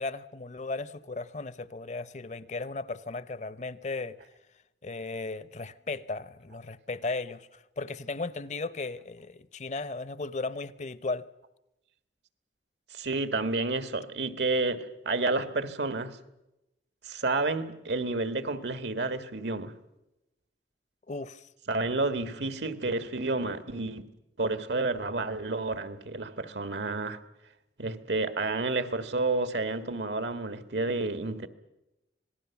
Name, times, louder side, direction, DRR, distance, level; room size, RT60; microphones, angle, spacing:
voice 1, 0.0-4.2 4.8-11.3 21.1-21.5, left 3 dB, 40° left, 0.7 m, -36 dB
voice 2, 12.9-16.2 17.0-19.7 21.7-24.1 24.4-27.2 27.8-31.5, right 3 dB, 80° right, 1.6 m, -30 dB
26.0 x 18.5 x 7.1 m
head